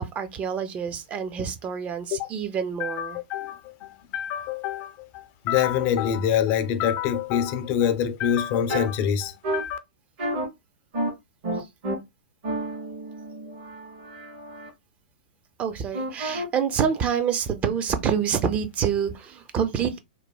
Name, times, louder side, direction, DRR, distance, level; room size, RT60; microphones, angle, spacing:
voice 1, 0.0-3.2 15.6-20.0, right 7 dB, 25° right, 0.5 m, -27 dB
voice 2, 2.8-9.8, left 9 dB, 40° left, 0.4 m, -26 dB
sound 1, 8.7-8.8 9.4-9.6 10.2-10.4 10.9-11.1 11.4-11.9 12.4-14.7 15.9-16.4, right 1 dB, 55° right, 1.3 m, -30 dB
3.0 x 2.1 x 2.2 m
hypercardioid pair, 110°, 5 cm